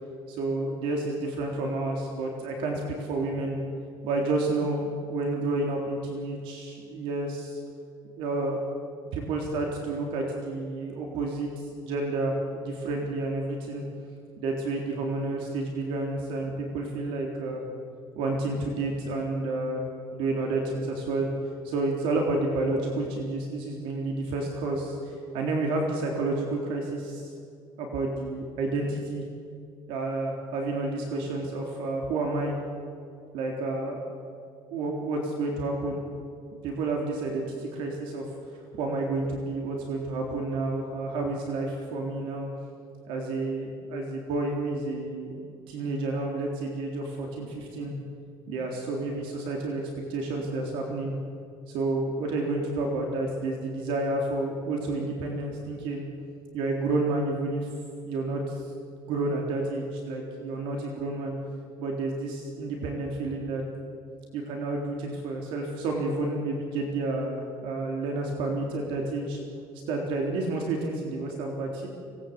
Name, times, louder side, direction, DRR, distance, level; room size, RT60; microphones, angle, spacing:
voice 1, 0.3-3.6 4.0-7.6 8.2-8.6 9.1-13.8 14.4-17.6 18.2-19.8 20.1-21.3 21.6-27.3 27.8-29.2 29.9-32.5 33.3-34.0 34.7-36.0 36.6-38.2 38.7-42.5 43.1-45.3 45.7-47.9 48.5-49.8 50.1-51.1 51.7-56.0 56.5-57.7 58.0-58.6 58.9-61.3 61.8-63.6 64.3-69.4 69.9-71.9, right 2 dB, 65° right, 1 dB, 3.7 m, -30 dB
25.5 x 19.5 x 8.3 m, 2.4 s
cardioid pair, 180°, 10 cm